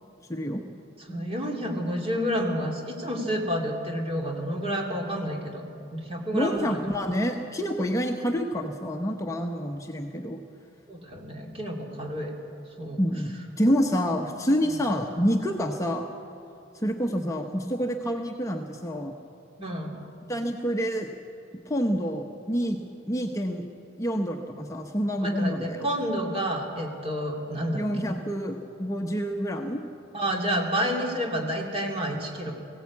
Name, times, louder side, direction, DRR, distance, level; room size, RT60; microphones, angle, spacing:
voice 1, 0.3-0.6 6.3-10.4 13.0-16.1 16.7-19.1 20.3-21.1 21.7-22.8 23.1-23.6 24.0-25.9 27.7-29.9, equal, 15° left, 2 dB, 0.9 m, -27 dB
voice 2, 1.1-5.7 5.9-6.8 10.9-12.3 12.8-13.0 13.6-13.9 14.7-14.8 19.6-19.9 25.2-28.1 30.1-32.5, equal, 30° right, 0 dB, 2.6 m, -29 dB
19.0 x 17.0 x 8.4 m, 2.6 s
head